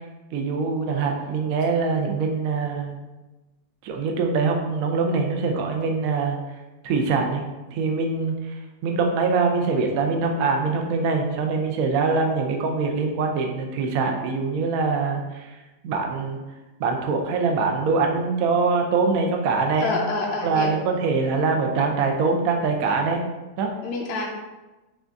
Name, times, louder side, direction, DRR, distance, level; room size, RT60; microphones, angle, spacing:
voice 1, 0.3-3.0 3.8-6.4 6.8-7.4 7.7-15.6 15.8-16.4 16.8-19.9 20.4-23.2 23.6-23.7, right 4 dB, 70° right, 3 dB, 0.8 m, -23 dB
voice 2, 19.8-20.8 23.8-24.3, left 3 dB, 70° left, -1 dB, 1.0 m, -27 dB
6.0 x 2.3 x 2.5 m, 1.1 s
omnidirectional pair, 1.9 m